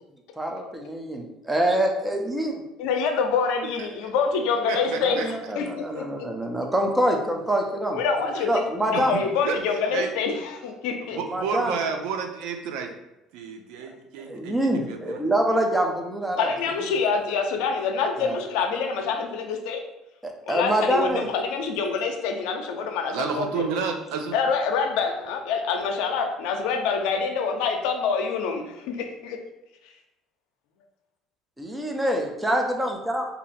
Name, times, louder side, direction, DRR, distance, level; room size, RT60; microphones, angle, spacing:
voice 1, 0.4-1.2 1.5-2.5 5.0-8.0 8.5-9.2 11.1-11.8 14.2-16.5 18.2-18.4 20.2-21.3 31.6-33.3, right 1 dB, 10° right, 2 dB, 0.6 m, -25 dB
voice 2, 2.8-6.0 7.9-11.2 16.4-19.8 20.5-23.7 24.3-29.4, left 5 dB, 85° left, 4 dB, 0.5 m, -26 dB
voice 3, 4.6-5.3 8.2-8.4 8.9-9.6 9.9-10.1 11.1-12.9 13.3-15.2 23.1-24.3, right 5 dB, 85° right, 5 dB, 0.5 m, -31 dB
2.7 x 2.6 x 4.1 m, 0.93 s
cardioid pair, 110°, 0 cm